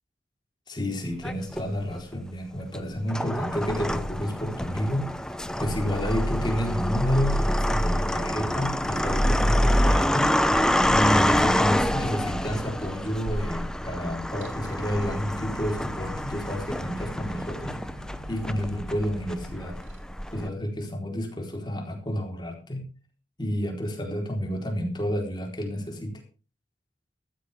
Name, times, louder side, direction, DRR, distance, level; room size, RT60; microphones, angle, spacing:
voice 1, 0.7-5.1 5.6-10.3 10.9-17.8 18.3-19.8 20.3-22.9 23.4-26.1, equal, 25° left, 2 dB, 4.1 m, -30 dB
sound 1, 1.2-2.0 2.7-20.5, equal, 5° left, 0.7 m, -26 dB
sound 2, 14.4-20.0, left 1 dB, 80° right, 3.2 m, -43 dB
15.5 x 14.5 x 3.6 m, 0.35 s
head